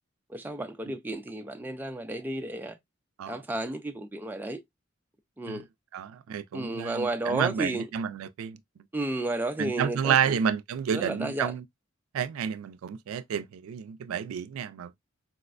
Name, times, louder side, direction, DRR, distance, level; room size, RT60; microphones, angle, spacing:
voice 1, 0.3-2.8 3.3-4.6 5.4-5.7 6.5-7.9 8.9-10.4 10.9-11.5, right 2 dB, 10° right, 0.3 m, -32 dB
voice 2, 5.9-8.6 9.6-11.6 12.1-15.0, right 8 dB, 90° right, 0.3 m, -30 dB
4.1 x 2.1 x 2.3 m
head